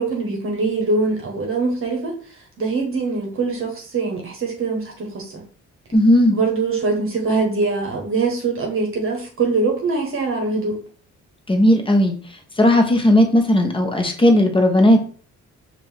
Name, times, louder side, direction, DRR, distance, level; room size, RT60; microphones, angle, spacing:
voice 1, 0.0-2.2 2.6-5.4 6.3-10.8, right 3 dB, 45° right, 1.2 m, -23 dB
voice 2, 5.9-6.4 11.5-12.1 12.6-15.0, left 1 dB, 15° left, 1.0 m, -15 dB
5.2 x 2.6 x 3.4 m
cardioid pair, 90°, 30 cm